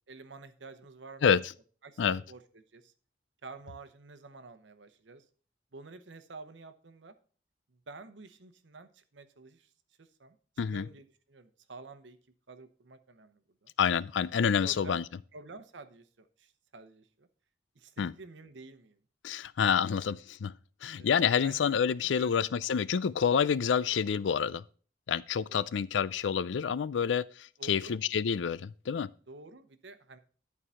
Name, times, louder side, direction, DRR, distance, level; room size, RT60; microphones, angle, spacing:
voice 1, 0.1-1.4 1.8-2.9 3.4-5.2 5.7-7.1 7.9-9.7 10.0-12.2 12.5-13.7 14.6-15.0 15.3-17.3 17.7-19.0 21.0-21.1 21.4-21.6 22.0-22.3 25.5-25.7 27.6-28.0 29.3-30.2, right 3 dB, 85° right, 0.9 m, -50 dB
voice 2, 13.8-15.0 18.0-18.1 19.2-20.5 20.8-24.6 25.1-27.3 27.6-29.1, left 7 dB, 85° left, 0.4 m, -28 dB
11.0 x 4.7 x 5.6 m
head